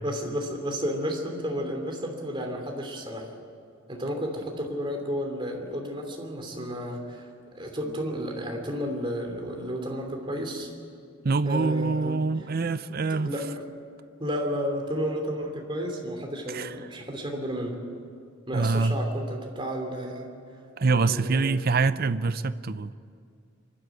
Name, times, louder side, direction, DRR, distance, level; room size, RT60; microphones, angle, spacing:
voice 1, 0.0-3.3 3.9-10.7 11.5-12.3 13.1-13.5 14.2-17.8 18.5-20.3 21.0-21.8, equal, 25° right, 2 dB, 3.0 m, -32 dB
voice 2, 11.2-13.3 16.5-16.7 18.5-19.0 20.8-22.9, right 4 dB, 45° right, 14 dB, 0.6 m, -25 dB
26.0 x 12.5 x 9.1 m, 2.3 s
head